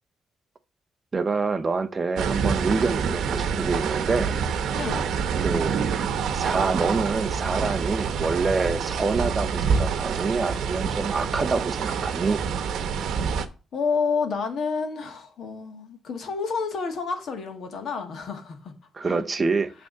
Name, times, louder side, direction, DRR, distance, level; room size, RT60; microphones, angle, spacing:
voice 1, 1.1-4.4 5.4-5.8 6.3-12.4 19.0-19.7, right 4 dB, 25° right, 0.5 m, -26 dB
sound 1, 2.2-13.5, right 6 dB, 90° right, 0.8 m, -27 dB
voice 2, 4.7-5.1 13.1-19.2, left 5 dB, 55° left, 1.6 m, -30 dB
9.0 x 3.5 x 6.6 m
wide cardioid pair, 170°, 0 cm